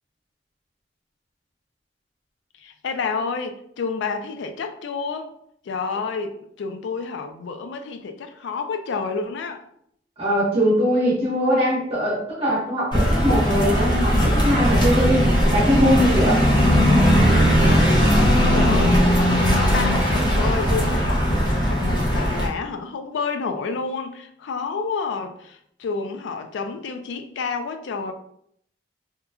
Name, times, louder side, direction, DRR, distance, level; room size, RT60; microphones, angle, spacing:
voice 1, 2.6-5.3 5.6-9.6 17.6-28.1, left 4 dB, 80° left, 0.3 m, -29 dB
voice 2, 10.2-15.2 15.5-16.5, equal, 30° right, 0.9 m, -21 dB
sound 1, 12.9-22.5, equal, 25° left, 0.6 m, -18 dB
3.0 x 2.3 x 2.3 m
head